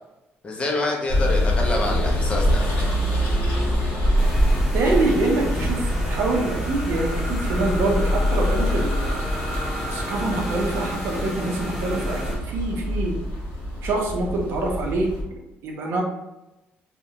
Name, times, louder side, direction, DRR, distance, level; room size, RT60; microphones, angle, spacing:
voice 1, 0.4-2.7, left 2 dB, 25° left, -1 dB, 0.4 m, -26 dB
sound 1, 1.1-15.2, equal, 65° left, 0.7 m, -24 dB
sound 2, 4.2-12.4, equal, 5° right, 0.8 m, -33 dB
voice 2, 4.7-9.2 9.9-12.2 12.5-13.2 13.8-15.1 15.6-16.0, right 2 dB, 60° right, 0 dB, 0.5 m, -25 dB
2.4 x 2.0 x 2.8 m, 0.95 s
cardioid pair, 175°, 4 cm